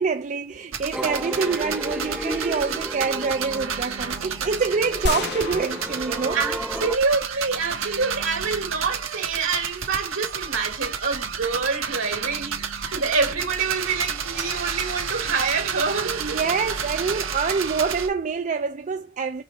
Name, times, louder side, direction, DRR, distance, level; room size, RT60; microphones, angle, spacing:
voice 1, 0.0-6.4 16.2-19.4, right 5 dB, 40° right, 0.4 m, -26 dB
sound 1, 0.7-18.1, right 6 dB, 90° right, 1.3 m, -31 dB
sound 2, 0.9-7.0, equal, 5° right, 0.7 m, -33 dB
sound 3, 5.1-7.3, left 4 dB, 55° left, 0.5 m, -32 dB
voice 2, 6.3-16.4, right 4 dB, 70° right, 2.6 m, -26 dB
5.9 x 3.8 x 5.4 m
head